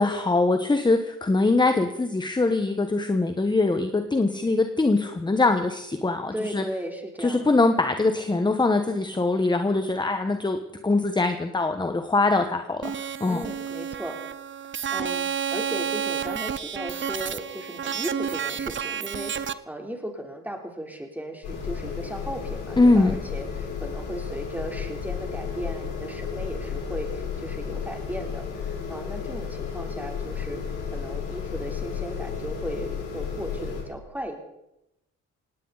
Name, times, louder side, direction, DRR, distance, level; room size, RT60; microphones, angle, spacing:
voice 1, 0.0-6.6 7.2-10.6 10.8-13.4 22.8-23.1, left 3 dB, 15° left, 7 dB, 1.2 m, -22 dB
voice 2, 6.3-7.4 13.2-14.2 14.9-34.3, right 1 dB, 5° right, 3 dB, 3.3 m, -36 dB
sound 1, 12.8-19.5, right 8 dB, 40° right, 0.8 m, -30 dB
sound 2, 21.4-33.8, left 6 dB, 90° left, 6.5 m, -33 dB
18.5 x 18.0 x 4.1 m, 0.87 s
cardioid pair, 90°, 30 cm